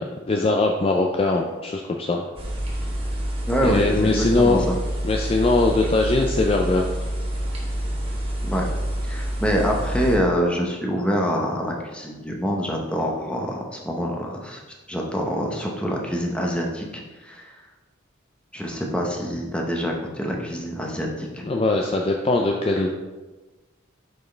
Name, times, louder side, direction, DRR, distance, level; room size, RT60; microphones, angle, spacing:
voice 1, 0.0-2.3 3.6-4.6 5.0-6.8 21.4-22.9, left 2 dB, 30° left, 1 dB, 0.4 m, -21 dB
sound 1, 2.4-10.2, right 1 dB, 30° right, 1.1 m, -27 dB
voice 2, 3.5-4.7 8.4-8.6 9.0-14.6 14.9-17.6 18.5-21.5, equal, 5° left, 0 dB, 0.8 m, -26 dB
5.4 x 4.3 x 4.4 m, 1.2 s
head